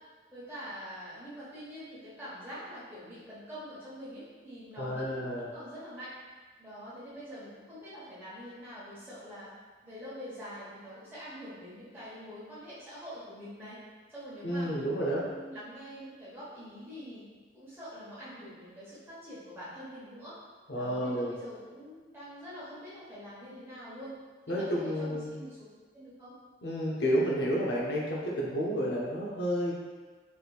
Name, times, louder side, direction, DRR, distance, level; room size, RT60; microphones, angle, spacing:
voice 1, 0.3-6.1 6.6-9.5 9.8-13.8 14.1-17.2 17.5-20.3 20.8-24.1 24.5-25.6 25.9-26.3, equal, 15° right, -11 dB, 1.1 m, -45 dB
voice 2, 4.8-5.5 14.4-15.3 20.7-21.4 24.5-25.3 26.6-29.7, equal, 70° left, -4 dB, 0.6 m, -30 dB
3.3 x 3.0 x 2.4 m, 1.4 s
head